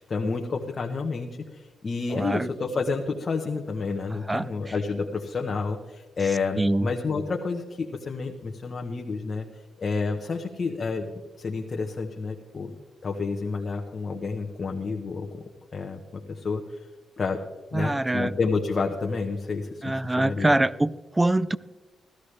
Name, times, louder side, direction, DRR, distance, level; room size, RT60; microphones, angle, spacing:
voice 1, 0.0-9.5 9.8-11.1 11.4-12.7 13.0-15.4 15.7-16.8 17.2-17.4 17.7-20.5, left 4 dB, 40° left, 2 dB, 1.0 m, -30 dB
voice 2, 2.1-2.5 4.1-4.7 6.6-6.9 17.7-18.3 19.8-21.6, right 1 dB, 15° right, 19 dB, 0.4 m, -24 dB
17.0 x 13.0 x 3.3 m, 1.2 s
cardioid pair, 105°, 0 cm